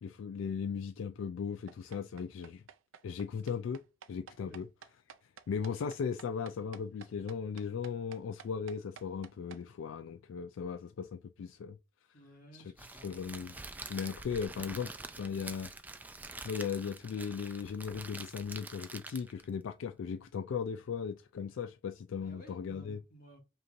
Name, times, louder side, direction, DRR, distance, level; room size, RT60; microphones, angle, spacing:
voice 1, 0.0-2.6 3.0-3.8 4.1-4.7 5.5-11.8 12.5-13.5 13.9-14.9 15.2-15.7 16.4-23.0, left 6 dB, 75° left, 0.3 m, -37 dB
sound 1, 1.7-9.6, right 7 dB, 85° right, 0.5 m, -52 dB
voice 2, 12.1-13.3 22.2-23.4, right 1 dB, 45° left, 1.4 m, -56 dB
Crackle, 12.8-19.5, right 3 dB, 10° right, 0.3 m, -46 dB
5.1 x 3.0 x 2.5 m
head